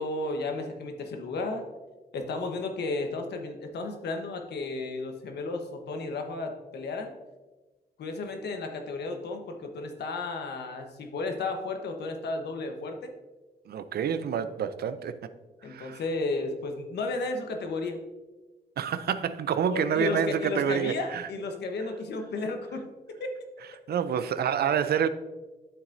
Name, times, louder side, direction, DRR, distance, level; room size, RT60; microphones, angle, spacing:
voice 1, 0.0-1.7 2.1-7.1 8.0-13.1 15.6-18.0 19.7-22.9, left 3 dB, 80° left, 1.1 m, -33 dB
voice 2, 13.7-15.3 15.7-16.0 18.8-21.3 23.9-25.1, right 8 dB, 70° right, 0.5 m, -28 dB
9.3 x 7.1 x 2.6 m
cardioid pair, 90°, 17 cm